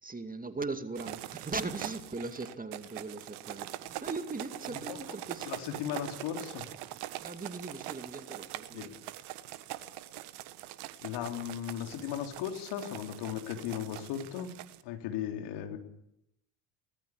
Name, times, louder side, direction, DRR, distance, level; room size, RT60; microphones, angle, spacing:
voice 1, 0.0-5.5 7.2-8.9, right 3 dB, 15° right, 2.3 m, -39 dB
sound 1, 0.9-14.8, right 15 dB, 60° right, 1.5 m, -43 dB
voice 2, 4.7-5.2 5.5-6.7 8.7-8.9 11.0-15.8, left 10 dB, 60° left, 3.5 m, -37 dB
24.5 x 19.5 x 8.4 m
figure-of-eight pair, 60°, 47 cm